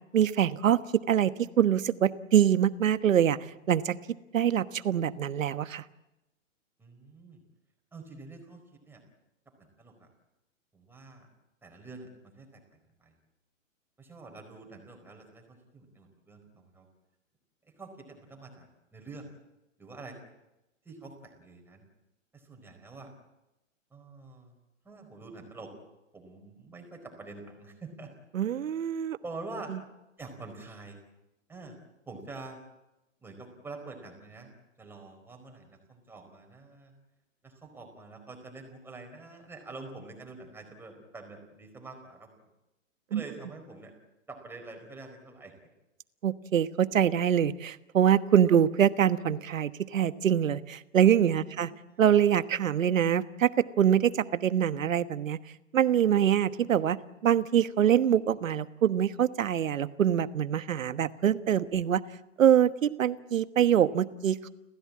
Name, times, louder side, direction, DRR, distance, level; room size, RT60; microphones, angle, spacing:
voice 1, 0.1-0.8 1.1-3.4 3.7-3.9 4.3-5.8 28.3-29.2 43.1-43.2 46.2-51.7 52.0-53.5 53.8-55.4 55.7-57.0 57.2-62.0 62.4-64.5, right 9 dB, 80° right, 13 dB, 1.3 m, -24 dB
voice 2, 6.8-7.4 7.9-9.0 9.6-10.1 10.7-11.3 11.6-12.6 13.0-13.1 14.0-16.9 17.6-19.3 19.8-20.2 20.8-21.8 22.3-23.1 23.9-24.5 24.8-25.7 26.1-28.1 29.2-29.7 30.2-31.0 31.5-31.8 32.1-32.6 33.2-34.5 34.8-36.9 37.4-42.3 43.1-43.9 44.3-45.5 48.5-48.6 51.4-52.0, right 3 dB, 5° right, 3 dB, 4.4 m, -46 dB
30.0 x 15.5 x 8.6 m, 0.96 s
hypercardioid pair, 145°, 39 cm